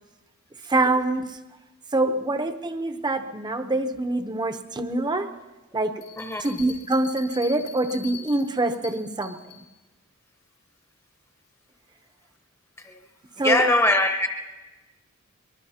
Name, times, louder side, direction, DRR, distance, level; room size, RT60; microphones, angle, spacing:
voice 1, 0.7-1.2 1.9-5.3 5.7-6.0 6.4-9.4 13.4-13.6, right 2 dB, 20° right, 7 dB, 0.7 m, -25 dB
sound 1, 6.0-9.7, left 8 dB, 80° left, 4.3 m, -43 dB
voice 2, 13.4-14.3, left 2 dB, 15° left, 4 dB, 0.9 m, -21 dB
23.5 x 21.0 x 2.8 m, 1.1 s
head